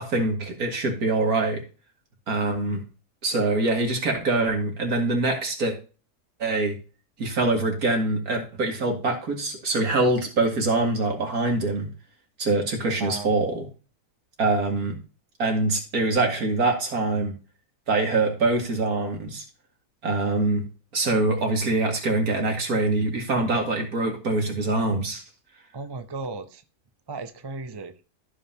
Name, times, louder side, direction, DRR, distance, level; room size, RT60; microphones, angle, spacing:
voice 1, 0.0-1.6 2.3-2.8 3.2-5.7 6.4-6.8 7.2-11.9 12.4-13.7 14.4-15.0 15.4-17.3 17.9-19.4 20.0-20.6 20.9-25.2, right 2 dB, 70° right, 2 dB, 2.5 m, -24 dB
voice 2, 13.0-13.3 25.7-26.6 27.1-27.9, right 3 dB, 25° right, 8 dB, 0.5 m, -35 dB
14.5 x 5.5 x 2.8 m, 0.35 s
omnidirectional pair, 1.6 m